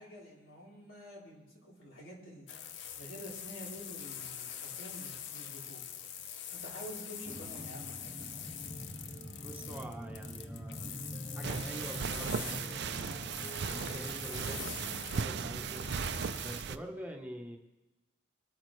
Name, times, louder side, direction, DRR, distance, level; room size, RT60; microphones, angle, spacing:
voice 1, 0.0-2.5 2.9-5.8 6.5-8.1, equal, 85° left, -4 dB, 3.7 m, -48 dB
sound 1, 2.5-16.6, left 9 dB, 60° left, 0.7 m, -45 dB
sound 2, 7.2-16.5, equal, 20° left, 2.8 m, -45 dB
voice 2, 9.4-11.0 11.4-13.3 13.7-15.9 16.4-17.6, right 1 dB, 10° right, 2 dB, 0.9 m, -45 dB
sound 3, 11.4-16.8, right 6 dB, 55° right, 0.4 m, -37 dB
21.5 x 8.8 x 3.2 m, 1.1 s
head